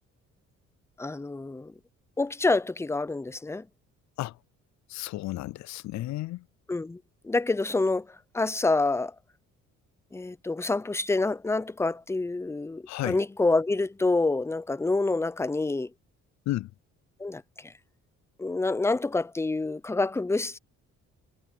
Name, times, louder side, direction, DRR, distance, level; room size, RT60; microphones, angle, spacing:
voice 1, 1.0-1.7 2.2-3.6 6.7-7.0 7.2-8.1 8.3-9.1 10.1-15.9 17.2-17.4 18.4-20.6, left 3 dB, 10° left, 0.5 m, -27 dB
voice 2, 4.9-6.4 12.9-13.2 16.5-16.7, left 16 dB, 65° left, 0.4 m, -32 dB
cardioid pair, 90°, 30 cm